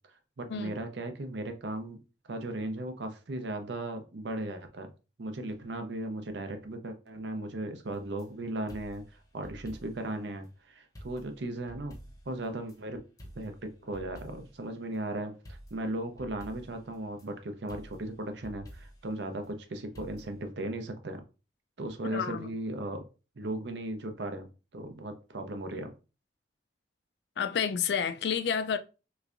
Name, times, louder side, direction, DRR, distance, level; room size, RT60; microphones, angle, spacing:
voice 1, 0.4-2.0 2.3-4.9 5.2-9.0 9.3-12.0 12.3-13.0 13.4-21.2 21.8-23.0 23.4-25.9, right 1 dB, 70° right, 0.6 m, -37 dB
sound 1, 7.9-8.3 8.7-10.1 10.4-10.5 11.0-12.8 13.2-14.6 15.5-17.3 17.7-19.1 20.0-20.5, equal, 20° left, 0.7 m, -49 dB
voice 2, 22.1-22.5 27.4-28.8, left 7 dB, 65° left, 0.3 m, -30 dB
3.3 x 3.1 x 2.5 m
head